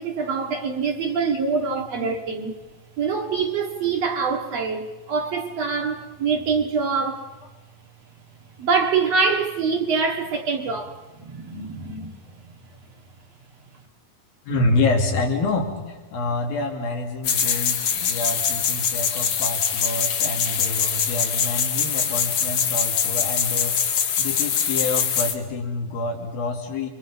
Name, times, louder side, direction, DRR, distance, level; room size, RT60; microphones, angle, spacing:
voice 1, 0.0-2.5 3.0-7.3 8.6-12.3, right 5 dB, 55° right, 2.1 m, -25 dB
voice 2, 14.4-26.9, left 2 dB, 90° left, 4.4 m, -27 dB
sound 1, 17.2-25.3, left 7 dB, 55° left, 2.3 m, -23 dB
28.5 x 23.5 x 5.6 m
omnidirectional pair, 4.1 m